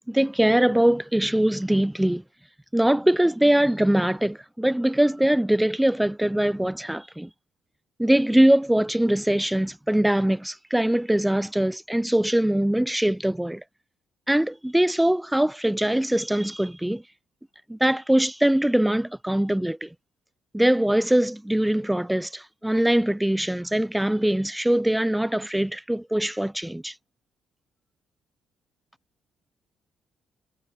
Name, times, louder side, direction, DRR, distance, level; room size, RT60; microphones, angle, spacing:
voice 1, 0.1-2.2 2.7-7.3 8.0-13.6 14.3-17.0 17.7-19.9 20.5-26.9, right 1 dB, 5° right, 0.5 m, -22 dB
cardioid pair, 90°, 0 cm